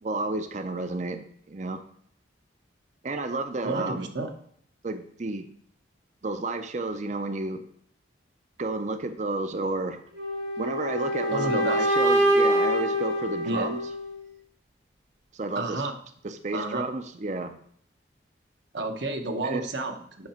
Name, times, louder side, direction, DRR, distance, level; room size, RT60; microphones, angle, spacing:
voice 1, 0.0-1.2 1.5-1.8 3.0-4.1 4.8-5.5 6.2-7.6 8.6-10.0 10.6-13.8 15.3-15.9 16.2-17.6 19.4-19.6, right 2 dB, 35° right, 9 dB, 0.5 m, -31 dB
voice 2, 3.6-4.3 11.3-11.9 13.4-13.7 15.6-15.9 16.5-16.9 18.7-20.3, right 2 dB, 65° right, 5 dB, 1.0 m, -31 dB
sound 1, 10.2-14.2, right 1 dB, 80° right, 2.0 m, -25 dB
8.6 x 5.7 x 4.3 m, 0.64 s
head